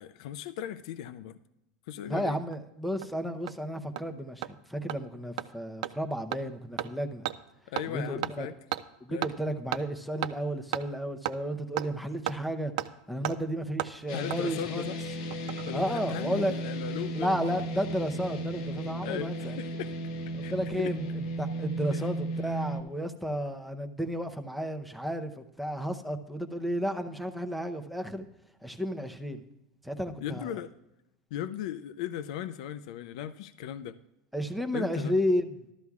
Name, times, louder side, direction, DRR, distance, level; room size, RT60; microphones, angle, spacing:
voice 1, 0.0-1.4 1.9-2.4 7.7-8.5 9.1-9.3 14.1-15.0 15.6-17.6 19.0-20.0 20.4-20.9 21.9-22.1 30.2-30.7 31.3-34.0 34.7-35.1, left 10 dB, 75° left, 12 dB, 0.5 m, -37 dB
voice 2, 2.1-7.2 7.9-8.5 9.0-12.7 13.1-14.8 15.7-16.5 17.1-19.6 20.3-28.2 28.6-29.4 29.8-30.6 34.3-35.4, equal, ahead, 7 dB, 0.6 m, -32 dB
Hammer, 2.5-2.6 3.0-3.1 3.5-3.6 4.0-4.1 4.4-4.5 4.9-5.0 5.4-5.5 5.8-5.9 6.3-6.4 6.8-6.9 7.2-7.4 7.8-7.9 8.2-8.3 8.7-8.8 9.2-9.3 9.7-9.8 10.2-10.3 10.7-10.8 11.2-11.4 11.8-11.9 12.3-12.4 12.8-12.9 13.2-13.4 13.8-13.9 14.3-14.4 15.3-15.7 16.0-16.1, right 13 dB, 75° right, 0.5 m, -32 dB
sound 1, 14.1-22.8, right 1 dB, 90° left, 1.4 m, -35 dB
14.0 x 12.5 x 2.4 m, 0.89 s
supercardioid pair, 155°, 4 cm